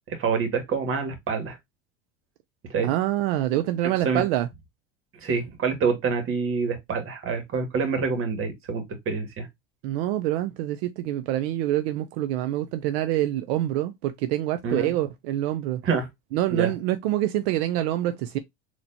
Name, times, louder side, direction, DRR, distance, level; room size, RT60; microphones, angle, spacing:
voice 1, 0.1-1.6 2.7-2.9 3.8-4.2 5.2-9.5 14.6-14.9 15.8-16.1 16.5-16.7, right 5 dB, 45° right, 1.7 m, -26 dB
voice 2, 2.8-4.5 9.8-15.8 16.3-18.4, right 13 dB, 80° right, 0.5 m, -26 dB
4.2 x 2.9 x 2.7 m
supercardioid pair, 110°, 30 cm